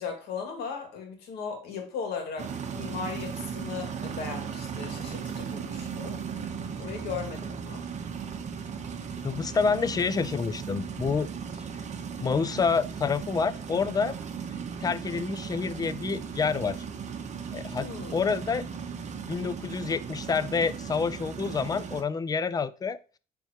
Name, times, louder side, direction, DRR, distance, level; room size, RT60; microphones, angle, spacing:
voice 1, 0.0-6.2 6.8-7.8 17.8-18.2, left 6 dB, 75° left, 3 dB, 2.0 m, -37 dB
sound 1, 2.4-22.0, right 6 dB, 45° right, 0.9 m, -37 dB
voice 2, 9.2-11.3 12.2-14.2 14.8-16.8 17.5-18.6 19.3-23.2, left 5 dB, 20° left, 16 dB, 0.4 m, -28 dB
9.0 x 3.5 x 3.0 m, 0.36 s
cardioid pair, 110°, 17 cm